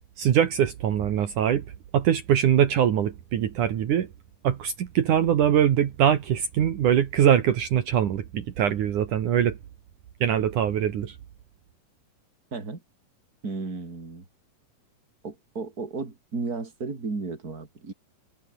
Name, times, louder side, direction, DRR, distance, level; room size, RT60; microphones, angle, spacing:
voice 1, 0.2-1.6 1.9-4.1 4.4-9.6 10.2-11.2, right 9 dB, 65° right, 3.1 m, -22 dB
voice 2, 12.5-12.8 13.4-14.2 15.2-17.9, right 4 dB, 25° right, 4.2 m, -34 dB
omnidirectional pair, 4.0 m